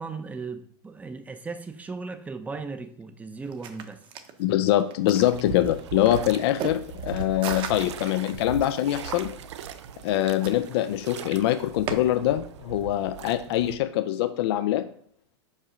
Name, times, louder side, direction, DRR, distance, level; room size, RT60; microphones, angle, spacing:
voice 1, 0.0-4.0, right 4 dB, 10° right, 0.6 m, -37 dB
sound 1, 3.4-11.9, right 8 dB, 35° right, 0.9 m, -40 dB
voice 2, 4.4-9.3 10.0-14.9, left 13 dB, 65° left, 0.5 m, -24 dB
sound 2, 5.1-13.8, right 7 dB, 85° right, 0.6 m, -39 dB
5.5 x 4.7 x 5.0 m
supercardioid pair, 130°, 14 cm